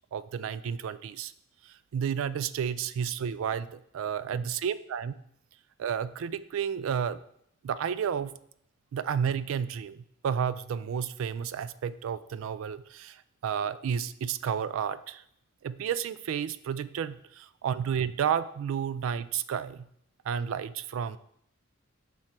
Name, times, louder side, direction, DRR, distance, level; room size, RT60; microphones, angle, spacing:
voice 1, 0.1-1.3 1.6-5.1 5.8-7.2 7.6-8.3 8.9-15.2 15.6-19.9 20.2-21.2, right 7 dB, 70° right, 16 dB, 0.3 m, -31 dB
5.9 x 3.8 x 4.3 m, 0.70 s
head